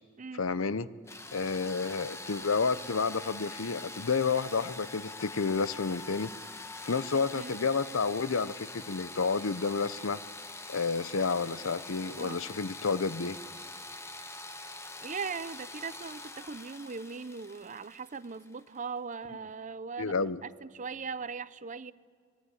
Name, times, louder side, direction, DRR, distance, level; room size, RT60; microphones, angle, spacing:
voice 1, 0.4-0.9 1.3-6.3 6.8-10.2 10.7-13.4 20.0-20.4, left 4 dB, 65° left, 16 dB, 0.7 m, -30 dB
sound 1, 1.1-18.8, left 2 dB, 15° left, 1.2 m, -44 dB
voice 2, 15.0-21.9, right 5 dB, 35° right, 16 dB, 0.6 m, -39 dB
25.0 x 21.0 x 9.9 m, 2.1 s
head